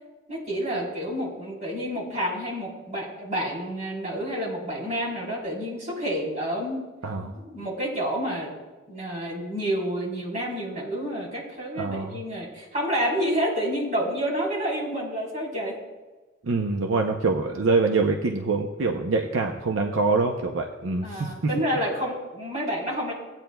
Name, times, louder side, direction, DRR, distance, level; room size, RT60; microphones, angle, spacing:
voice 1, 0.3-6.8 7.3-8.6 8.9-15.8 21.0-23.1, equal, 35° right, -4 dB, 3.7 m, -29 dB
voice 2, 7.0-7.3 11.8-12.2 16.4-21.3, right 3 dB, 75° right, 3 dB, 0.7 m, -25 dB
17.0 x 9.0 x 2.3 m, 1.2 s
head